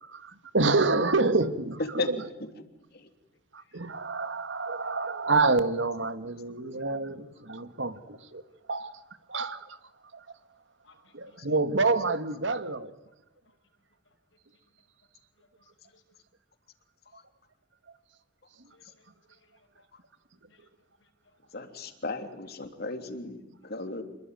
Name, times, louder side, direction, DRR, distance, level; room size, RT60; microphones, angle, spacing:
voice 1, 0.0-2.3 3.5-8.4 8.7-9.0 9.3-9.8 10.1-10.3 11.1-12.9 18.6-18.7, right 3 dB, 75° right, 11 dB, 1.8 m, -28 dB
voice 2, 10.8-11.3 15.4-16.0 18.7-19.4 19.8-19.9 20.5-20.6, left 3 dB, 80° left, 4 dB, 6.2 m, -64 dB
voice 3, 21.5-24.0, left 3 dB, 55° left, 7 dB, 3.2 m, -35 dB
27.5 x 22.5 x 9.4 m, 0.92 s
head